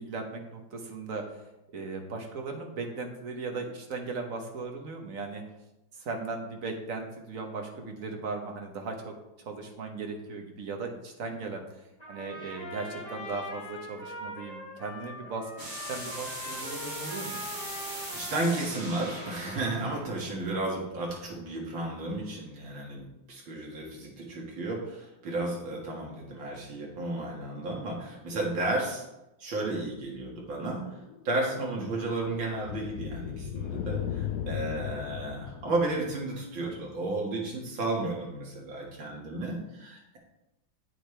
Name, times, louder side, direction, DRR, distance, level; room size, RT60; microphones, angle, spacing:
voice 1, 0.0-1.4 1.7-5.4 5.9-11.6 12.1-17.4 36.6-36.8, right 3 dB, 45° right, 3 dB, 1.4 m, -37 dB
Trumpet, 12.0-20.1, left 1 dB, 20° left, 2.3 m, -42 dB
sound 1, 15.6-21.3, right 1 dB, 25° right, 1.8 m, -41 dB
voice 2, 18.1-29.0 29.4-30.8 31.2-40.2, right 2 dB, 75° right, -2 dB, 2.7 m, -33 dB
sound 2, 30.8-36.4, left 10 dB, 75° left, 0.9 m, -37 dB
8.9 x 8.7 x 3.3 m, 0.94 s
omnidirectional pair, 2.1 m